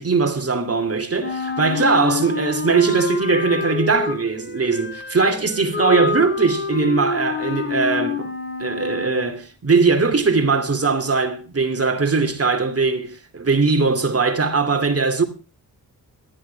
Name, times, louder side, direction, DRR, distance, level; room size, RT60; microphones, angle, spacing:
voice 1, 0.0-8.3 8.6-15.2, right 4 dB, 40° right, 2.7 m, -20 dB
Wind instrument woodwind instrument, 1.2-9.3, left 4 dB, 30° left, 5.0 m, -27 dB
19.5 x 13.0 x 3.4 m
wide cardioid pair, 105°, 36 cm